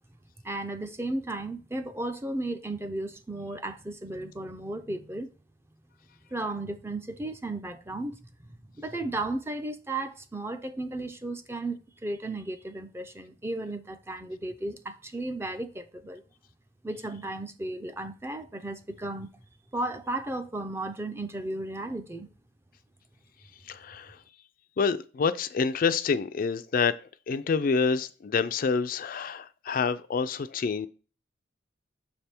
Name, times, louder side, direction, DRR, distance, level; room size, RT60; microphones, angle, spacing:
voice 1, 0.4-5.3 6.3-16.2 16.8-19.3 19.7-22.3, right 2 dB, 15° right, 0.4 m, -34 dB
voice 2, 23.7-24.2 24.8-26.9 27.3-30.9, left 5 dB, 45° left, 0.3 m, -27 dB
6.6 x 3.4 x 4.3 m
head